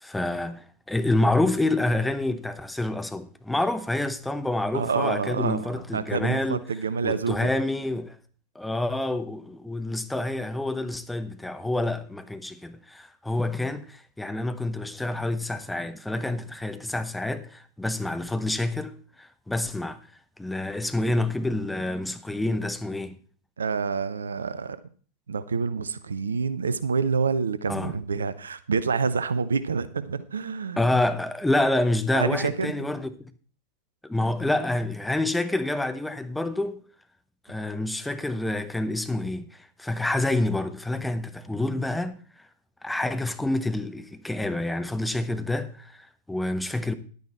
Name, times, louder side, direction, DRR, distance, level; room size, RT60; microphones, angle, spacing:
voice 1, 0.0-6.6 7.0-8.2 8.5-20.0 20.4-23.2 27.7-27.9 30.8-33.3 34.0-36.8 37.5-42.1 42.8-46.9, left 2 dB, 5° left, 0.8 m, -28 dB
voice 2, 4.7-7.5 23.6-24.8 25.3-31.0 32.1-32.9, right 5 dB, 70° right, 0.7 m, -27 dB
11.0 x 9.2 x 4.3 m
figure-of-eight pair, 90°, 0 cm